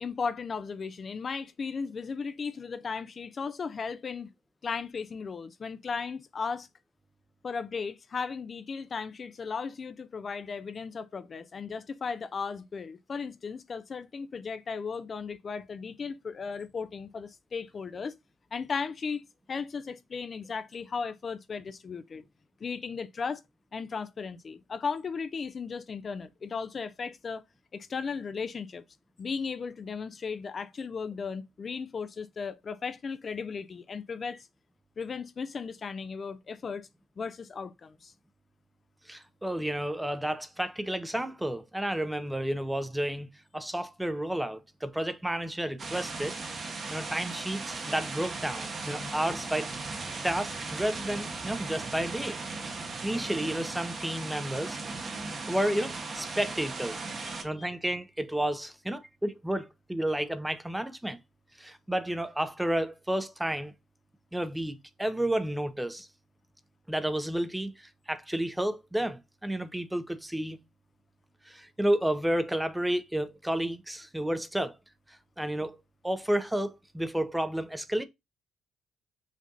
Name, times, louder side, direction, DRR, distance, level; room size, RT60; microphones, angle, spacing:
voice 1, 0.0-4.3 4.6-6.7 7.4-18.2 18.5-19.2 19.5-22.2 22.6-23.4 23.7-27.4 27.7-28.8 29.2-34.5 35.0-36.9 37.2-38.1 49.0-49.1 57.2-57.7, left 5 dB, 40° left, 0.4 m, -36 dB
voice 2, 39.1-46.4 46.9-49.7 50.2-52.4 52.7-54.8 55.5-57.0 57.4-61.2 61.6-63.7 64.3-66.1 66.9-70.6 71.5-74.7 75.4-78.0, right 1 dB, 5° right, 0.6 m, -31 dB
sound 1, 45.8-57.4, right 3 dB, 40° right, 1.0 m, -37 dB
5.2 x 2.6 x 3.8 m
cardioid pair, 90°, 0 cm